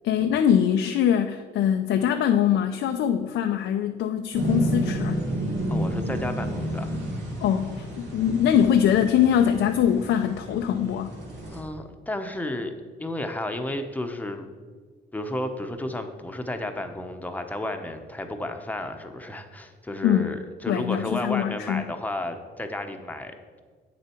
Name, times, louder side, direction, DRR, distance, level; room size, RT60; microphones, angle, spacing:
voice 1, 0.0-5.3 7.4-11.1 20.0-20.3 20.7-21.9, left 9 dB, 75° left, 6 dB, 0.5 m, -23 dB
sound 1, 4.3-11.6, right 1 dB, 65° right, 2.4 m, -31 dB
voice 2, 5.7-6.9 11.5-12.7 13.0-14.4 15.1-23.6, left 1 dB, 10° left, 5 dB, 0.9 m, -32 dB
8.6 x 6.8 x 4.5 m, 1.5 s
cardioid pair, 90°, 20 cm